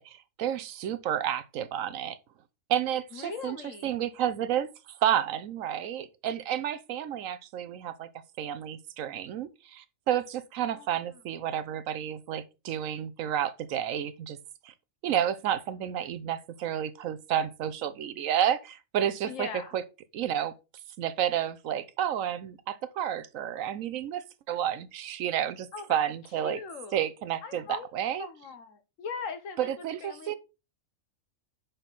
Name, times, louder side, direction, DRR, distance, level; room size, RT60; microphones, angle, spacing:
voice 1, 0.0-2.2 2.7-3.6 3.8-4.7 5.0-8.1 8.4-14.4 14.6-14.7 15.0-19.8 20.1-20.5 21.0-26.6 26.9-28.3 29.6-30.3, right 10 dB, 80° right, 1.1 m, -31 dB
voice 2, 3.1-4.0 10.7-11.0 19.2-19.7 25.7-26.0 26.4-27.0 27.4-27.9 28.2-30.3, left 5 dB, 75° left, 1.3 m, -40 dB
6.2 x 5.3 x 3.9 m
omnidirectional pair, 1.4 m